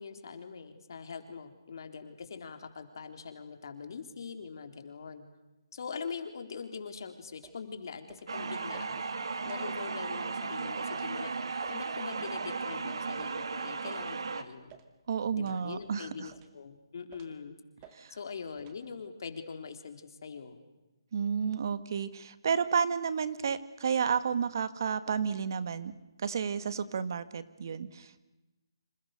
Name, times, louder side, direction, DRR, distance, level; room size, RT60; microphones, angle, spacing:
voice 1, 0.0-5.2 5.7-14.8 15.3-17.6 18.1-20.6 25.1-25.2, left 5 dB, 55° left, 7 dB, 3.8 m, -43 dB
sound 1, 7.4-7.6 8.1-8.3 8.7-8.9 9.4-9.6 10.3-10.4 10.9-11.1 11.6-11.8 12.3-12.5 13.2-13.4 14.0-14.2 14.7-14.9 15.4-15.6 16.3-16.6 17.1-17.4 17.8-18.0 18.6-18.8, right 10 dB, 20° right, 2.2 m, -55 dB
sound 2, 8.3-14.4, right 4 dB, 75° right, 2.6 m, -36 dB
voice 2, 15.1-16.3 17.9-18.2 21.1-28.2, right 6 dB, 50° right, 13 dB, 1.7 m, -31 dB
28.5 x 27.5 x 6.7 m, 1.0 s
hypercardioid pair, 165°, 3 cm